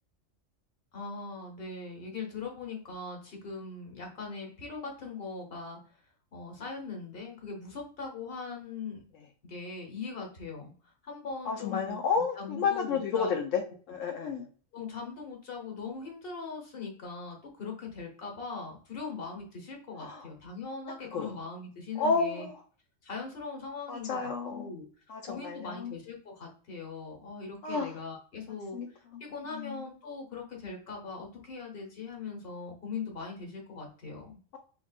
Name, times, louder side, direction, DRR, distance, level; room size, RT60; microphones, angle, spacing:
voice 1, 0.9-5.8 6.3-9.0 9.4-10.7 11.0-12.0 12.3-13.3 14.7-22.5 23.0-24.9 25.2-28.8 29.2-34.4, left 4 dB, 50° left, 1 dB, 1.3 m, -40 dB
voice 2, 11.4-13.6 13.9-14.5 20.0-20.3 21.1-21.3 22.0-22.5 23.9-24.7 25.1-25.9 27.6-27.9 28.7-28.9 29.1-29.2 29.5-29.8, left 5 dB, 80° left, 2 dB, 1.0 m, -31 dB
3.4 x 3.1 x 2.4 m, 0.41 s
omnidirectional pair, 1.3 m